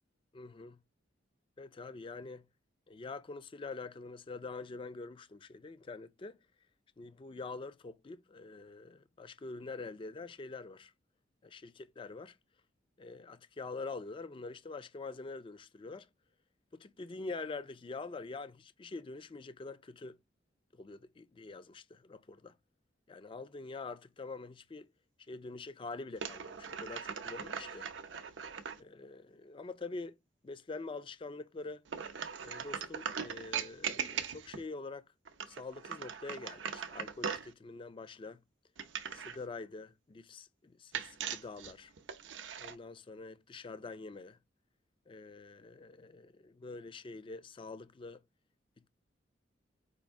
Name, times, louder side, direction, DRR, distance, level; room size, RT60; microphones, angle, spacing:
voice 1, 0.3-0.8 1.6-2.5 2.9-6.4 7.0-10.9 11.4-12.4 13.0-16.1 16.7-20.2 20.7-22.6 23.1-24.9 25.3-27.9 28.8-30.2 30.4-31.8 32.4-35.1 35.5-38.4 39.1-41.9 42.6-44.4 45.1-48.2, left 3 dB, 30° left, 0.4 m, -45 dB
sound 1, 26.2-28.8 31.9-34.7 35.3-37.5 38.8-39.4 40.9-42.8, right 7 dB, 90° right, 0.6 m, -40 dB
5.0 x 2.6 x 3.4 m
head